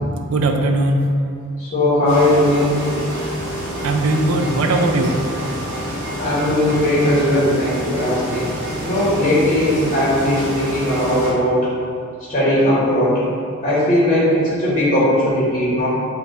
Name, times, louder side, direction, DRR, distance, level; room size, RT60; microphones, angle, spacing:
voice 1, 0.3-1.0 3.8-5.2, right 2 dB, 70° right, 4 dB, 0.4 m, -18 dB
voice 2, 1.6-2.7 6.2-8.6 8.8-11.7 12.3-13.2 13.6-15.9, left 1 dB, 30° left, -9 dB, 0.9 m, -18 dB
sound 1, 2.1-11.3, equal, 45° right, 1.2 m, -27 dB
5.3 x 2.3 x 3.3 m, 2.4 s
head